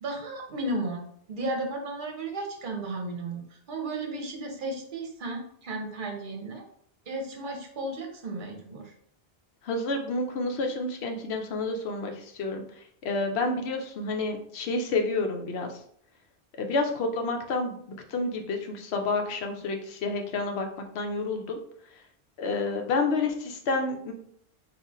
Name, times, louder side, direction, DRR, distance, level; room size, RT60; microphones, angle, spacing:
voice 1, 0.0-6.6 7.1-8.9, right 2 dB, 55° right, 2 dB, 1.0 m, -34 dB
voice 2, 9.6-12.6 13.0-15.7 16.6-17.8 18.1-20.7 20.9-21.6 22.4-24.1, left 3 dB, 75° left, 4 dB, 0.9 m, -29 dB
3.7 x 2.5 x 4.1 m, 0.65 s
omnidirectional pair, 1.1 m